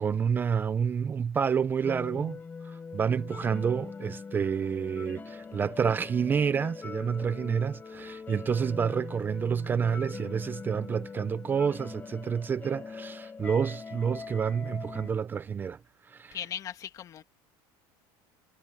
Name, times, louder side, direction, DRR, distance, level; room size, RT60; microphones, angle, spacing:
voice 1, 0.0-2.4 2.6-15.8 16.0-16.4, right 7 dB, 20° right, 0.4 m, -29 dB
sound 1, 1.8-15.1, left 5 dB, 15° left, 5.4 m, -42 dB
voice 2, 16.3-17.2, left 9 dB, 35° left, 2.0 m, -38 dB
cardioid pair, 150°, 10 cm